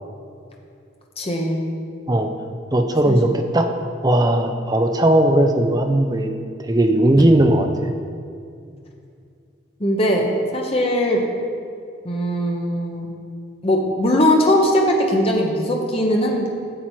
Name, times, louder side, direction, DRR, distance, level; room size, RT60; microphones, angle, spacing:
voice 1, 1.2-1.6 3.1-3.2 9.8-10.3 10.5-11.2 12.0-13.1 13.6-16.5, equal, 30° left, 0 dB, 0.9 m, -19 dB
voice 2, 2.7-3.7 4.0-6.3 6.7-7.9, right 1 dB, 20° right, 5 dB, 0.5 m, -17 dB
8.7 x 7.4 x 4.5 m, 2.4 s
head